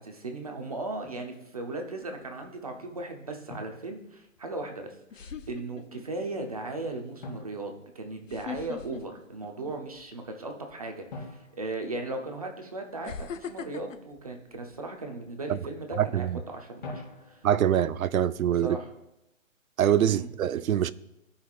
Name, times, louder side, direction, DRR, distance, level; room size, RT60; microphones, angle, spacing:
voice 1, 0.0-11.3 11.6-17.4 18.6-18.9 20.1-20.3, right 2 dB, 25° right, 0.7 m, -37 dB
Drum, 1.0-1.3 3.5-4.6 7.2-8.6 11.1-12.8 16.8-17.8, left 2 dB, 35° left, 2.4 m, -45 dB
sound 1, 2.0-2.5 4.4-4.5 5.1-6.2 6.7-6.9 8.2-10.1 10.5-10.7 11.7-11.8 13.0-15.3 15.7-16.0, left 6 dB, 65° left, 0.8 m, -41 dB
voice 2, 16.0-16.4 17.4-18.8 19.8-20.9, right 10 dB, 80° right, 0.6 m, -24 dB
16.0 x 5.7 x 2.4 m
hypercardioid pair, 175°, 41 cm